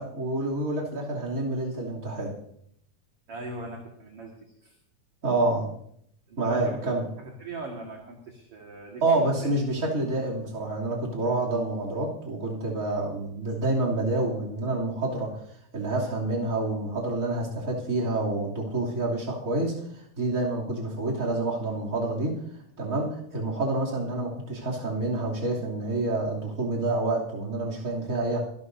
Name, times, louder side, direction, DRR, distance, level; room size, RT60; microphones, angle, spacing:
voice 1, 0.0-2.3 5.2-5.7 6.4-7.0 9.0-15.4 15.7-22.4 22.8-28.4, right 2 dB, 25° right, -4 dB, 3.0 m, -28 dB
voice 2, 3.3-4.3 4.6-4.7 6.3-6.8 7.2-9.5, right 2 dB, 50° right, 0 dB, 2.4 m, -40 dB
24.0 x 12.5 x 2.7 m, 0.69 s
omnidirectional pair, 3.9 m